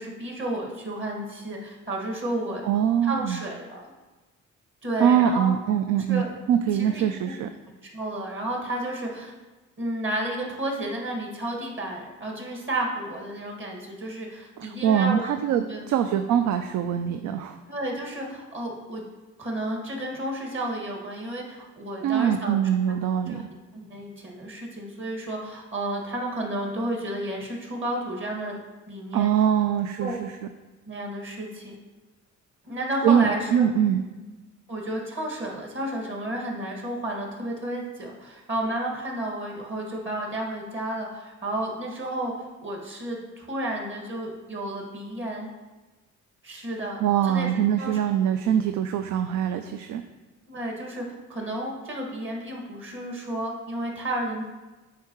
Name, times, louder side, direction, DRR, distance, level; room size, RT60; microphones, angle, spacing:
voice 1, 0.0-2.6 3.0-3.9 4.8-5.5 6.1-6.3 6.8-7.3 7.9-9.3 9.8-15.2 15.6-15.8 17.7-19.0 19.4-22.6 23.3-23.4 23.7-28.6 28.9-29.3 30.0-30.1 30.9-31.8 32.6-33.6 34.7-45.5 46.4-47.5 47.8-48.0 50.5-54.5, right 1 dB, 40° right, 0 dB, 1.8 m, -32 dB
voice 2, 2.6-3.4 5.0-6.2 6.5-7.5 14.6-17.6 22.0-23.5 29.1-30.4 33.0-34.0 47.0-50.0, right 9 dB, 75° right, 8 dB, 0.4 m, -23 dB
8.4 x 4.7 x 3.0 m, 1.2 s
cardioid pair, 90°, 30 cm